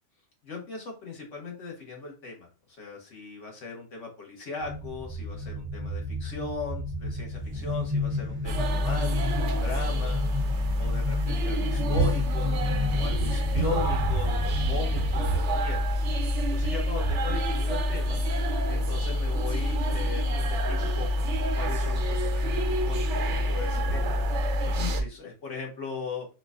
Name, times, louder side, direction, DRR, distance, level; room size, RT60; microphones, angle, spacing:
voice 1, 0.4-10.2 10.8-12.6 12.9-15.8 16.5-18.2 18.7-21.1 21.5-24.1 24.6-26.3, left 4 dB, 90° left, 0 dB, 1.6 m, -38 dB
sound 1, 4.6-15.4, left 2 dB, 15° right, 0.5 m, -33 dB
sound 2, 8.5-25.0, equal, 75° right, 0.9 m, -27 dB
4.5 x 2.5 x 2.3 m, 0.34 s
omnidirectional pair, 1.2 m